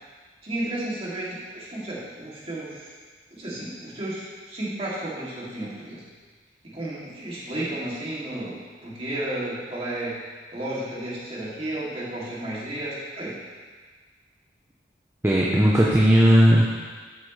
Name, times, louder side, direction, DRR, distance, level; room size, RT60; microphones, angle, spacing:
voice 1, 0.4-2.9 3.3-6.0 6.7-10.2 10.5-13.3, right 1 dB, 35° right, -8 dB, 2.7 m, -32 dB
voice 2, 15.2-16.7, equal, 15° right, -5 dB, 0.8 m, -17 dB
12.0 x 8.3 x 3.3 m, 1.5 s
head